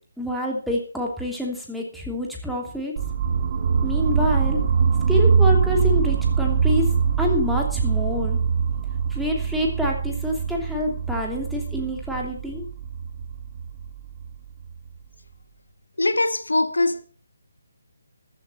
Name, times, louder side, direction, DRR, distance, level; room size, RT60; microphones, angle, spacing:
voice 1, 0.2-2.9 3.8-4.6 5.1-6.9 7.2-8.4 9.1-12.6, left 1 dB, ahead, 2.9 m, -27 dB
sound 1, 3.0-14.9, right 6 dB, 35° right, 1.6 m, -23 dB
voice 2, 16.0-17.0, left 2 dB, 75° left, 1.5 m, -21 dB
14.5 x 12.0 x 4.2 m
figure-of-eight pair, 150°, 0 cm